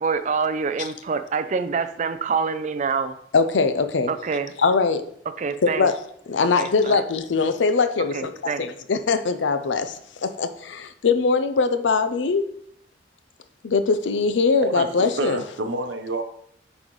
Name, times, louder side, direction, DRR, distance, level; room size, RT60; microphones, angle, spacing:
voice 1, 0.0-3.1 4.1-4.5 5.4-5.9 6.6-7.0 8.1-8.6, right 5 dB, 40° right, 10 dB, 0.4 m, -26 dB
voice 2, 3.3-4.1 4.6-5.0 5.6-6.0 6.3-12.5 13.6-15.4, left 4 dB, 90° left, 10 dB, 0.5 m, -22 dB
voice 3, 14.6-16.2, right 2 dB, 85° right, 6 dB, 0.8 m, -28 dB
8.7 x 4.1 x 3.1 m, 0.68 s
head